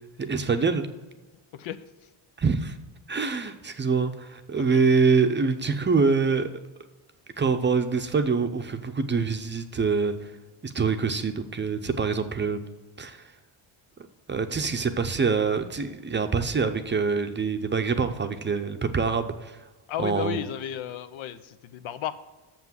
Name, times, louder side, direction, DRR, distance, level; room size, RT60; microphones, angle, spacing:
voice 1, 0.2-0.9 2.4-2.8 3.1-6.5 7.4-10.3 10.6-12.6 13.0-13.2 14.3-19.6 20.0-20.4, right 5 dB, 25° right, 7 dB, 0.6 m, -25 dB
voice 2, 1.5-2.1 4.5-4.8 19.9-22.1, left 11 dB, 70° left, 12 dB, 0.8 m, -34 dB
7.0 x 6.0 x 7.4 m, 1.2 s
cardioid pair, 110°, 48 cm